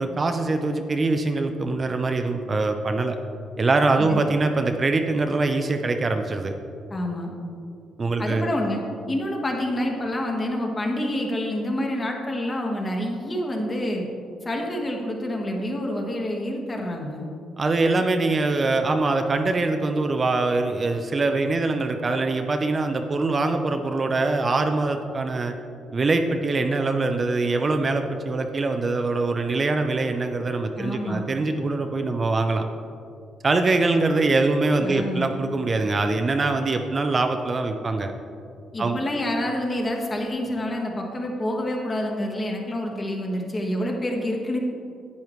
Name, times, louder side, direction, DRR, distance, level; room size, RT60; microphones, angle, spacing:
voice 1, 0.0-3.2 3.6-6.5 8.0-8.5 17.6-25.5 25.9-32.6 33.4-38.1 38.8-39.0, right 3 dB, 35° right, 6 dB, 0.6 m, -23 dB
voice 2, 6.9-7.3 8.2-8.8 9.1-14.0 14.4-17.2 30.8-31.3 34.8-35.3 38.7-44.6, left 1 dB, 30° left, 1 dB, 1.6 m, -27 dB
10.5 x 8.6 x 3.2 m, 2.5 s
cardioid pair, 90°, 0 cm